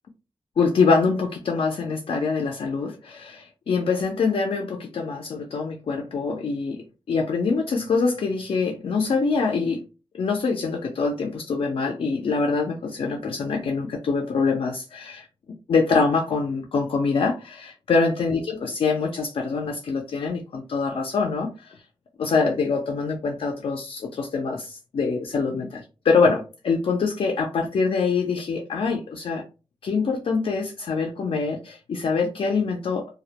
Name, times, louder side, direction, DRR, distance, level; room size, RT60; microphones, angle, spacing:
voice 1, 0.6-9.8 10.1-21.8 22.2-29.4 29.8-33.1, left 4 dB, 70° left, 0.4 m, -24 dB
2.2 x 2.0 x 2.7 m
wide cardioid pair, 145°, 10 cm